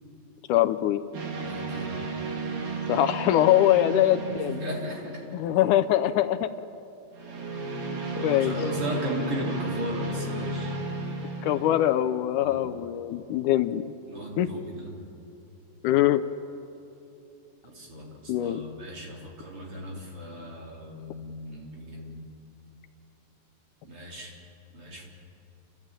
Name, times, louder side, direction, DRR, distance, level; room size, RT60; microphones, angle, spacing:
voice 1, 0.5-1.0 2.9-4.6 5.3-6.5 8.2-8.5 11.4-13.8 14.4-14.5 15.8-16.2 18.3-18.6, left 13 dB, 80° left, 12 dB, 2.1 m, -23 dB
sound 1, 1.1-5.6 7.1-12.0, right 2 dB, 70° right, 3.6 m, -33 dB
voice 2, 1.3-2.0 4.0-4.1 4.5-5.2 8.2-10.7 12.4-12.6 14.1-14.9 17.6-22.3 23.8-24.4 24.7-25.1, right 1 dB, 45° right, -2 dB, 4.3 m, -36 dB
29.0 x 14.5 x 8.9 m, 2.8 s
omnidirectional pair, 3.6 m